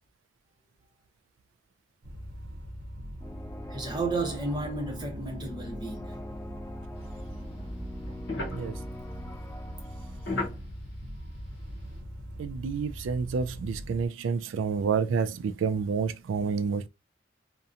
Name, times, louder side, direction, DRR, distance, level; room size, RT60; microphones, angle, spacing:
sound 1, 2.0-14.1, equal, 65° right, 0.7 m, -42 dB
sound 2, 3.2-10.6, left 1 dB, 15° left, 0.3 m, -45 dB
voice 1, 3.7-6.2 8.1-8.2, right 3 dB, 25° right, 0.8 m, -33 dB
sound 3, 7.0-12.0, left 2 dB, 65° left, 0.8 m, -38 dB
voice 2, 12.4-16.9, right 5 dB, 90° right, 0.3 m, -29 dB
2.7 x 2.1 x 2.4 m
head